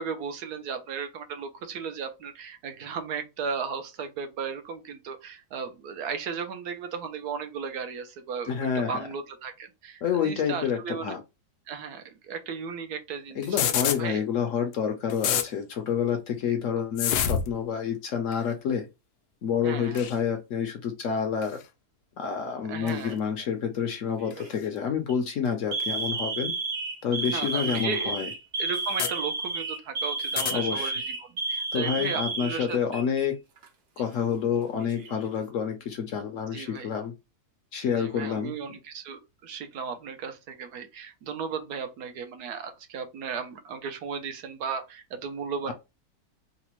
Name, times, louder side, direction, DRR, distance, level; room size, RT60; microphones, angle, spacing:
voice 1, 0.0-11.1 11.7-14.2 19.6-20.1 22.7-23.1 27.2-28.1 28.6-32.8 36.5-36.9 37.9-45.7, right 6 dB, 75° right, 1.2 m, -35 dB
voice 2, 8.5-9.0 10.0-11.2 13.4-18.9 19.4-21.6 22.2-26.5 27.0-28.3 30.5-30.9 31.7-33.4 34.0-37.1 37.7-38.5, left 7 dB, 65° left, 0.9 m, -28 dB
sound 1, 13.4-14.0 14.7-14.8 15.1-15.5 17.0-17.5 18.3-18.5 20.0-20.2 21.4-21.6 22.9-23.0 24.3-24.4 25.8-25.9 27.3-27.4 27.7-27.8 28.7-29.1 30.2-30.6, left 9 dB, 80° left, 1.1 m, -27 dB
Alarm, 22.8-23.3 24.2-24.5 24.9-25.1 25.7-33.3 33.6-33.7 34.6-35.3, right 3 dB, 55° right, 0.9 m, -32 dB
4.0 x 2.1 x 3.0 m
omnidirectional pair, 1.7 m